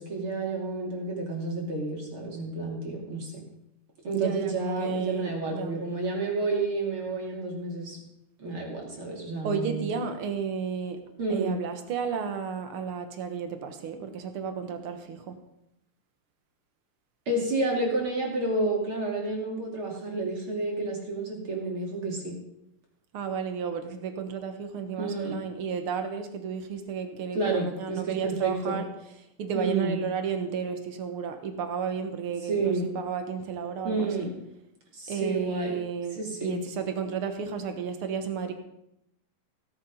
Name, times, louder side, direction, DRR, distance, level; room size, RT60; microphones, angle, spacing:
voice 1, 0.0-3.4 4.0-8.0 8.4-9.9 11.2-11.6 17.3-22.3 25.0-25.4 27.3-28.8 29.5-30.0 32.5-32.9 33.8-34.3 34.9-35.8 36.1-36.6, right 3 dB, 35° right, -1 dB, 3.3 m, -30 dB
voice 2, 4.1-5.8 9.4-11.0 11.3-15.3 23.1-28.9 29.4-34.3 35.1-38.5, right 6 dB, 70° right, 7 dB, 1.3 m, -33 dB
17.0 x 9.7 x 5.4 m, 0.81 s
omnidirectional pair, 4.2 m